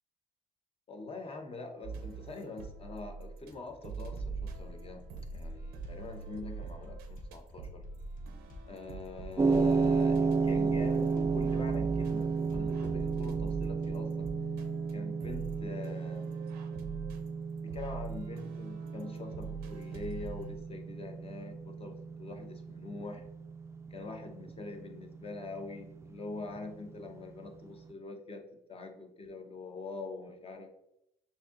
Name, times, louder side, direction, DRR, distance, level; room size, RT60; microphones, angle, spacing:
voice 1, 0.9-7.8 8.7-14.3 14.9-16.3 17.6-23.3 23.9-28.4 28.7-30.7, left 3 dB, 35° left, 4 dB, 0.9 m, -44 dB
sound 1, 1.8-3.5 3.8-20.6, right 5 dB, 85° right, 0.6 m, -44 dB
sound 2, 3.5-14.2, left 2 dB, 55° left, 1.2 m, -47 dB
sound 3, 9.4-27.6, right 4 dB, 15° right, 0.4 m, -33 dB
6.5 x 2.7 x 2.5 m, 0.82 s
supercardioid pair, 75°, 16 cm